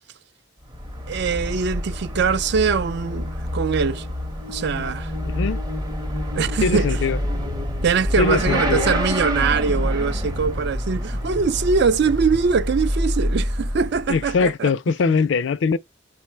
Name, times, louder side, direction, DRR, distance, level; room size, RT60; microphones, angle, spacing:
Motorcycle / Accelerating revving vroom, 0.6-14.5, equal, 20° right, 0.7 m, -27 dB
voice 1, 1.1-4.1 4.5-5.1 6.3-7.0 7.8-14.7 15.0-15.2, right 5 dB, 60° right, 0.4 m, -22 dB
voice 2, 5.2-5.6 6.6-7.2 8.2-8.9 14.1-15.8, left 5 dB, 65° left, 0.4 m, -22 dB
4.5 x 2.0 x 4.4 m
head